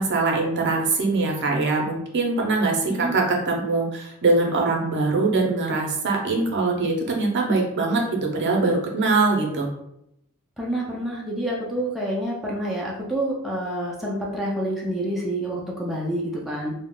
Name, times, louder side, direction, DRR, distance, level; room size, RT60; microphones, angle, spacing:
voice 1, 0.0-9.7, right 3 dB, 55° right, 0 dB, 0.6 m, -22 dB
voice 2, 10.6-16.7, right 1 dB, ahead, -5 dB, 0.4 m, -28 dB
2.3 x 2.0 x 3.6 m, 0.79 s
head